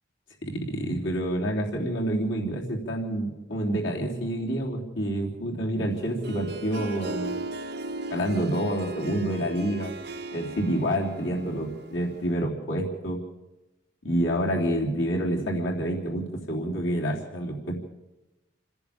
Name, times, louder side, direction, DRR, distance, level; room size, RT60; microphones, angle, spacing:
voice 1, 0.4-7.4 8.1-9.9 10.3-13.2 14.0-17.8, right 1 dB, 85° left, -1 dB, 3.5 m, -28 dB
Harp, 5.9-12.4, right 2 dB, 60° right, 1.3 m, -37 dB
28.5 x 10.5 x 8.7 m, 1.0 s
head